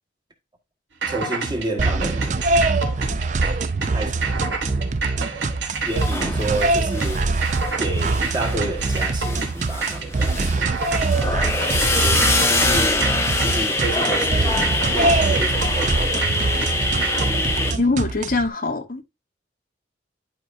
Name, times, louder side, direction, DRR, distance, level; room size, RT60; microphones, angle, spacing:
sound 1, 1.0-17.3, right 4 dB, 75° right, 1.6 m, -29 dB
voice 1, 1.1-2.4 3.9-4.4 5.8-7.3 7.8-10.7 12.0-14.6 14.9-16.3, right 2 dB, 25° right, 1.3 m, -30 dB
sound 2, 1.8-18.5, right 3 dB, 40° right, 0.5 m, -24 dB
sound 3, 5.9-7.7 8.0-17.7, left 2 dB, 15° left, 0.8 m, -24 dB
voice 2, 17.8-19.0, left 3 dB, 50° left, 0.9 m, -22 dB
10.5 x 4.6 x 2.5 m
head